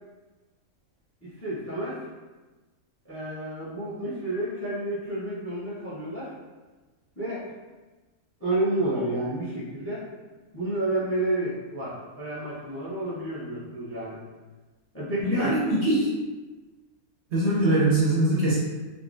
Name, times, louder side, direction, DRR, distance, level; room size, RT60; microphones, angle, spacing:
voice 1, 1.2-2.0 3.1-6.3 7.2-7.5 8.4-10.0 10.5-14.2 14.9-15.6, right 1 dB, 15° left, -9 dB, 0.5 m, -30 dB
voice 2, 15.2-16.1 17.3-18.6, right 1 dB, 60° right, -7 dB, 0.7 m, -22 dB
3.6 x 2.1 x 2.5 m, 1.2 s
omnidirectional pair, 1.6 m